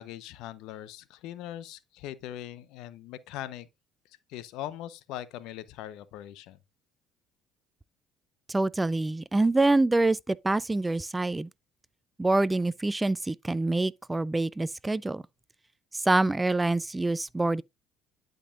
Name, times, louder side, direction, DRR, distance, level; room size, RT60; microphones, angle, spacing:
voice 1, 0.0-3.7 4.3-6.6, left 12 dB, 75° left, 0.7 m, -41 dB
voice 2, 8.5-11.5 12.2-15.2 15.9-17.6, right 2 dB, 15° right, 0.3 m, -26 dB
11.0 x 5.2 x 2.4 m
supercardioid pair, 80°, 0 cm